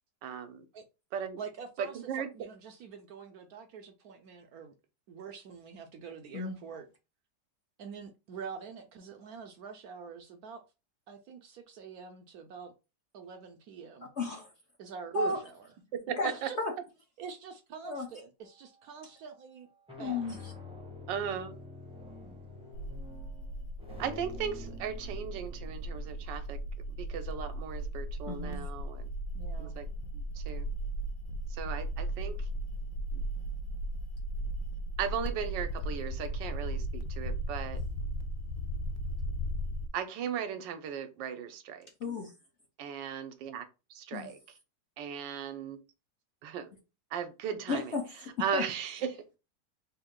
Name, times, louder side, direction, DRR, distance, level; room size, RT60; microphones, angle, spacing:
voice 1, 0.2-0.6 1.1-1.4 1.8-2.3 15.1-15.3 16.1-16.5 21.1-21.5 24.0-26.6 27.0-29.1 29.6-29.9 30.1-30.7 31.5-32.5 33.1-33.2 35.0-37.8 39.9-41.9 42.8-44.4 45.0-45.8 46.4-46.7 47.1-47.9 48.4-49.2, right 8 dB, 85° right, 1.3 m, -37 dB
voice 2, 1.4-4.7 5.1-6.9 7.8-10.6 11.1-12.7 13.1-14.1 14.8-15.7 16.3-16.6 17.2-19.7 20.0-20.3 29.3-29.8, right 6 dB, 70° right, 0.9 m, -46 dB
voice 3, 14.2-14.5 15.1-15.4 16.2-16.3 16.6-16.7 17.8-18.1 20.0-20.5 28.3-28.6 42.0-42.3 44.1-44.3 47.7-48.6, left 3 dB, 55° left, 0.8 m, -33 dB
sound 1, 18.4-18.8 19.6-28.3, left 2 dB, 5° right, 0.5 m, -49 dB
sound 2, 22.7-39.9, right 1 dB, 80° left, 1.2 m, -36 dB
3.5 x 2.7 x 3.6 m
omnidirectional pair, 1.9 m